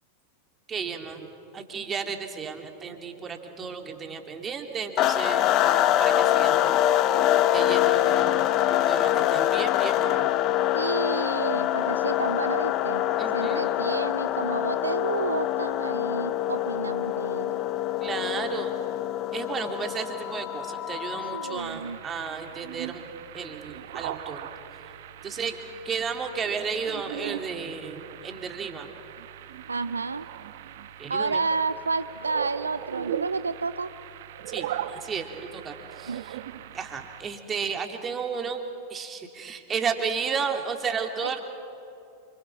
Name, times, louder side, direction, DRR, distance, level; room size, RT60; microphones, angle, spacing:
voice 1, 0.7-6.8 7.5-10.3 13.2-13.7 18.0-18.8 19.3-23.1 23.3-24.5 25.2-25.6 25.8-28.9 31.0-31.4 34.5-36.4 36.7-38.6 38.9-41.4, right 6 dB, 20° right, 4 dB, 2.7 m, -33 dB
sound 1, 5.0-21.7, left 12 dB, 35° left, 1.0 m, -25 dB
voice 2, 10.7-13.0 13.3-17.6 21.3-22.0 29.7-30.3 31.1-33.9 36.1-36.2, right 4 dB, 75° right, 14 dB, 0.5 m, -30 dB
sound 2, 21.6-37.2, right 11 dB, 55° right, 1.1 m, -39 dB
28.0 x 26.0 x 6.1 m, 2.7 s
figure-of-eight pair, 90°, 0 cm